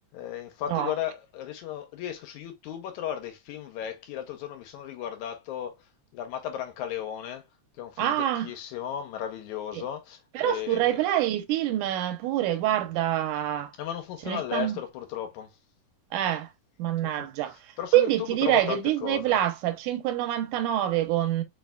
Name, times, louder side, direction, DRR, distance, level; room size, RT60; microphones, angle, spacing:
voice 1, 0.1-5.7 6.1-7.4 7.8-11.0 13.8-15.5 17.0-17.3 17.8-19.4, left 10 dB, 75° left, 2.1 m, -35 dB
voice 2, 8.0-8.5 9.7-9.9 10.3-13.7 14.3-14.8 16.1-16.5 16.8-17.6 17.9-21.4, right 12 dB, 85° right, 2.2 m, -26 dB
4.9 x 3.2 x 2.2 m
omnidirectional pair, 3.6 m